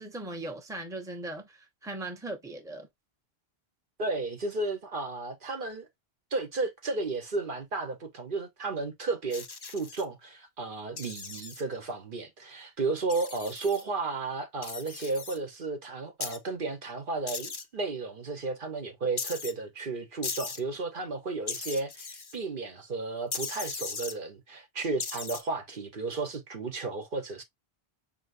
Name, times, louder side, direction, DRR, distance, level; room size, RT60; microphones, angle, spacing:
voice 1, 0.0-2.9, right 2 dB, 5° right, 0.8 m, -39 dB
voice 2, 4.0-5.9 6.3-27.4, right 3 dB, 60° right, 1.1 m, -33 dB
sound 1, 9.3-10.0 11.0-11.6 13.1-13.8 14.6-15.4 16.2-16.4 17.3-17.6 19.2-19.5 20.2-20.6 21.5-22.4 23.3-24.1 25.0-25.4, left 5 dB, 35° left, 0.4 m, -37 dB
5.4 x 2.9 x 2.5 m
omnidirectional pair, 1.0 m